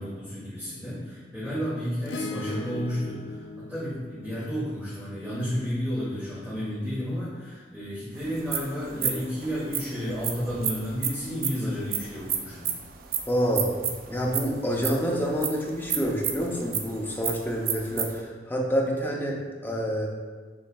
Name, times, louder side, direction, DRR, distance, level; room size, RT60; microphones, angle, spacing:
voice 1, 0.0-12.7, equal, 10° right, -11 dB, 1.0 m, -32 dB
Acoustic guitar / Strum, 2.1-6.7 8.5-8.6, left 2 dB, 85° left, 0.5 m, -39 dB
sound 1, 8.2-18.2, right 8 dB, 55° right, 0.4 m, -32 dB
voice 2, 13.3-13.7 14.1-20.1, equal, 10° left, -2 dB, 0.5 m, -27 dB
6.7 x 3.1 x 2.3 m, 1.4 s
head